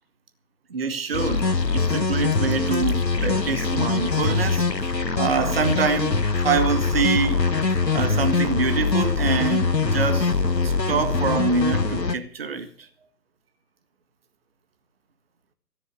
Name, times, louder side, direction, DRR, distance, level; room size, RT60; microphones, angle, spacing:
voice 1, 0.7-1.5 1.7-6.2 6.4-7.4 7.9-10.4 10.6-12.9, right 5 dB, 35° right, 1.8 m, -25 dB
sound 1, 1.1-12.1, left 4 dB, 90° left, 1.2 m, -23 dB
17.0 x 7.2 x 8.3 m
figure-of-eight pair, 145°, 49 cm